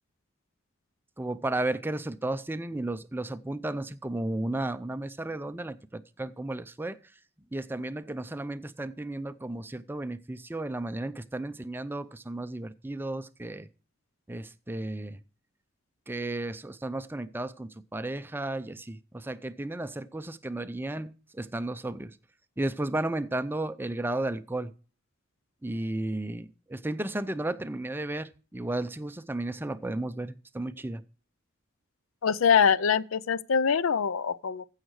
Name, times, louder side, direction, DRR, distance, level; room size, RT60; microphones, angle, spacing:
voice 1, 1.2-7.0 7.5-13.7 14.3-15.2 16.1-22.2 22.6-24.7 25.6-31.0, right 2 dB, 10° right, 0.4 m, -34 dB
voice 2, 32.2-34.6, left 6 dB, 80° left, 0.5 m, -24 dB
15.5 x 6.5 x 4.7 m
head